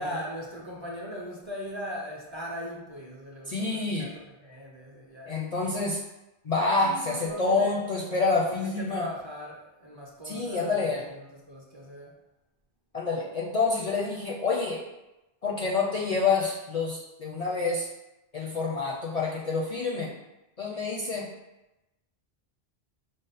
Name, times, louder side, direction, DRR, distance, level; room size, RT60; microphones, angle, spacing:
voice 1, 0.0-5.5 6.8-7.7 8.2-12.1, equal, 35° right, -3 dB, 0.5 m, -39 dB
voice 2, 3.5-4.1 5.3-6.0 6.4-9.1 10.2-11.1 12.9-14.8 15.4-17.9 18.3-20.1 20.6-21.3, left 4 dB, 50° left, -3 dB, 0.5 m, -27 dB
5.2 x 2.0 x 3.9 m, 0.98 s
omnidirectional pair, 1.1 m